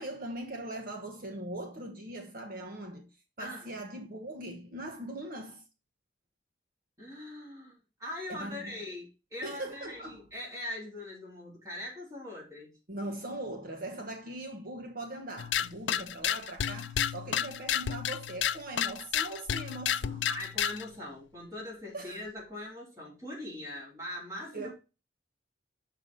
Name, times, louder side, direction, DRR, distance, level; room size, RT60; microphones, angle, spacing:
voice 1, 0.0-3.1 3.4-5.6 8.3-8.7 9.4-10.3 12.9-20.3 21.9-22.2 24.5-24.7, right 1 dB, 55° right, 1.2 m, -40 dB
voice 2, 3.4-3.8 7.0-12.8 20.3-24.7, left 1 dB, 20° right, 4.0 m, -41 dB
sound 1, 15.4-20.9, left 10 dB, 80° left, 0.4 m, -31 dB
6.9 x 4.8 x 5.5 m
head